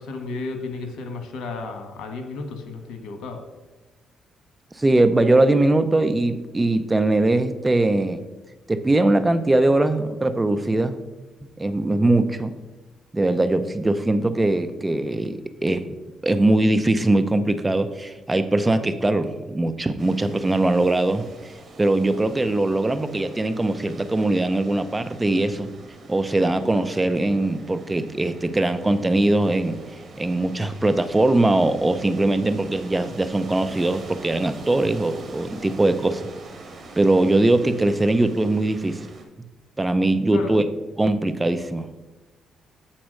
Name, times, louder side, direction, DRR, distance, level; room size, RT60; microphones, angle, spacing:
voice 1, 0.0-3.4 40.3-40.6, left 3 dB, 80° left, 6 dB, 1.2 m, -33 dB
voice 2, 4.7-8.2 8.7-11.0 11.6-12.5 13.1-15.8 16.2-21.3 21.8-25.7 26.1-29.8 30.2-36.3 37.0-39.1 39.8-40.6 41.0-41.9, right 2 dB, 15° right, 10 dB, 0.6 m, -21 dB
sound 1, 20.0-39.2, right 3 dB, 45° right, 1.6 m, -43 dB
8.0 x 4.2 x 6.4 m, 1.1 s
cardioid pair, 90°, 0 cm